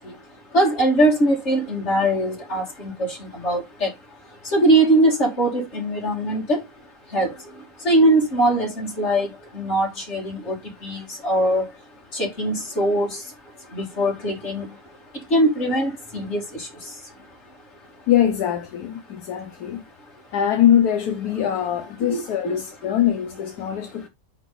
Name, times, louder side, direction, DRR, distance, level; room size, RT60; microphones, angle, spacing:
voice 1, 0.5-3.9 4.5-6.6 7.1-7.3 7.8-9.3 9.5-10.6 10.8-11.7 12.1-13.2 13.7-14.7 15.3-16.7 22.1-22.5, right 1 dB, 40° left, 2.8 m, -21 dB
voice 2, 18.1-19.8 20.3-24.1, left 10 dB, 70° left, 1.2 m, -22 dB
6.1 x 5.0 x 3.9 m
omnidirectional pair, 1.8 m